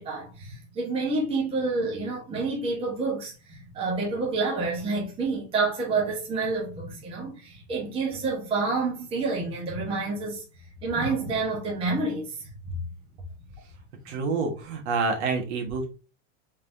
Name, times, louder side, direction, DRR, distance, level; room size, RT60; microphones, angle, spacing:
voice 1, 0.0-10.4 10.8-12.4, right 3 dB, 15° right, 1.0 m, -28 dB
voice 2, 14.0-15.9, right 4 dB, 55° right, 1.4 m, -27 dB
4.1 x 3.6 x 2.6 m
supercardioid pair, 160°, 41 cm